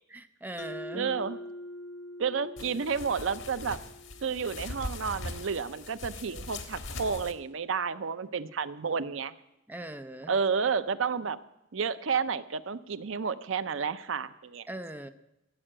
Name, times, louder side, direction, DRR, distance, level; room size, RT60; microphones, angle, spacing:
voice 1, 0.1-1.2 9.7-10.4 14.7-15.1, right 1 dB, 10° right, 10 dB, 0.6 m, -40 dB
Mallet percussion, 0.6-5.1, left 1 dB, 65° left, 0.9 m, -44 dB
voice 2, 0.9-1.4 2.2-3.8 4.2-9.3 10.3-11.4 11.7-14.7, right 5 dB, 75° right, 14 dB, 0.6 m, -31 dB
sound 1, 2.6-7.3, left 2 dB, 80° left, 1.5 m, -41 dB
14.5 x 7.6 x 8.8 m, 0.90 s
head